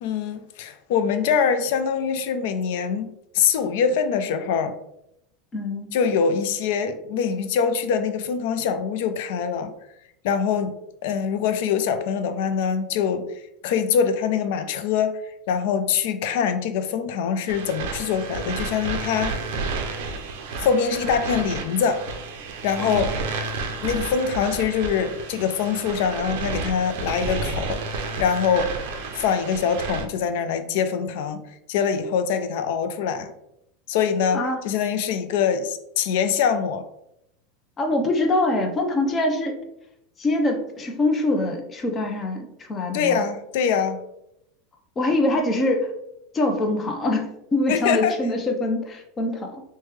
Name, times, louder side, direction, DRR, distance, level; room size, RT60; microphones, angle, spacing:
voice 1, 0.0-4.7 5.9-9.7 10.2-10.7 11.0-13.3 13.6-15.1 15.5-19.3 20.5-22.0 22.6-23.1 23.8-28.7 29.1-31.4 31.7-33.3 33.9-36.8 42.9-44.0 47.7-48.1, left 7 dB, 70° left, 10 dB, 0.4 m, -24 dB
voice 2, 5.5-5.9 22.8-23.2 34.3-34.6 37.8-39.6 40.2-43.2 45.0-45.9 46.3-49.6, left 2 dB, 25° left, 4 dB, 0.6 m, -24 dB
sound 1, 17.5-30.1, right 4 dB, 70° right, 0.4 m, -31 dB
3.1 x 2.1 x 3.3 m, 0.80 s
supercardioid pair, 125°, 0 cm